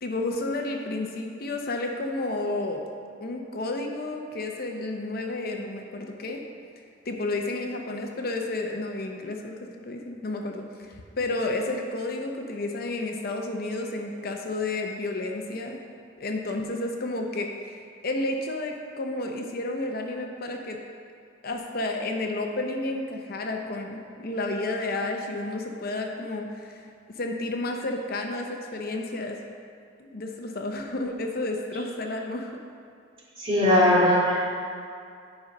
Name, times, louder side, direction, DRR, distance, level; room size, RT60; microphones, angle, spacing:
voice 1, 0.0-2.8 3.2-6.4 7.1-15.8 16.2-17.8 18.0-20.8 21.4-26.8 27.2-29.4 30.0-32.5, left 2 dB, 55° left, 2 dB, 0.7 m, -31 dB
voice 2, 33.4-34.4, left 1 dB, 30° right, -7 dB, 2.2 m, -19 dB
10.0 x 5.3 x 5.1 m, 2.3 s
head